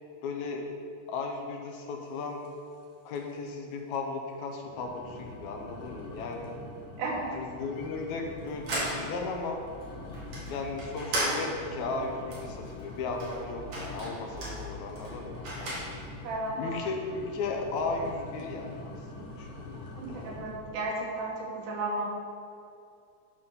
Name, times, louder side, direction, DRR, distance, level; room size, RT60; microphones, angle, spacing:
voice 1, 0.2-0.7 1.1-2.5 3.1-6.6 7.3-9.6 10.4-15.9 16.6-19.7, left 3 dB, 75° left, 2 dB, 2.1 m, -36 dB
sound 1, 2.4-2.8 3.1-3.5 3.9-4.0 4.6-20.8, left 2 dB, 60° left, 1.7 m, -45 dB
voice 2, 7.0-7.3 16.2-16.7 19.9-22.1, right 2 dB, 85° right, -2 dB, 3.0 m, -33 dB
sound 2, 8.3-16.3, right 1 dB, 60° right, 2.9 m, -37 dB
11.5 x 4.0 x 5.6 m, 2.5 s
omnidirectional pair, 3.6 m